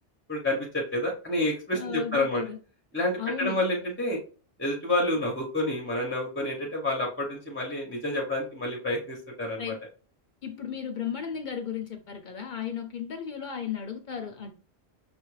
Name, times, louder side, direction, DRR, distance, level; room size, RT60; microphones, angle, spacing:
voice 1, 0.3-2.4 2.9-4.2 4.6-9.7, left 1 dB, 15° left, 0 dB, 0.6 m, -29 dB
voice 2, 1.7-2.6 3.2-3.6 9.6-9.8 10.4-14.5, left 7 dB, 60° left, 5 dB, 0.6 m, -35 dB
5.7 x 2.4 x 3.1 m, 0.38 s
omnidirectional pair, 1.1 m